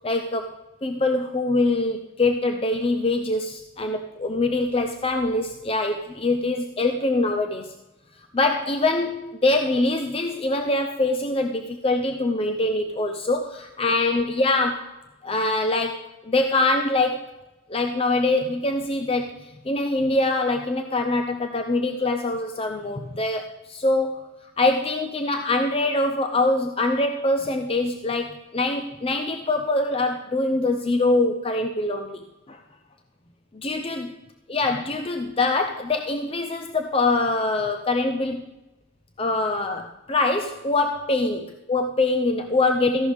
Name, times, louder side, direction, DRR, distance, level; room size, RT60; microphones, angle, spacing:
voice 1, 0.0-0.5 0.8-7.7 8.3-15.0 15.2-17.2 17.7-32.6 33.5-34.1 34.5-38.5 39.2-43.1, left 2 dB, 25° left, 5 dB, 0.6 m, -24 dB
14.5 x 11.5 x 3.5 m, 0.98 s
head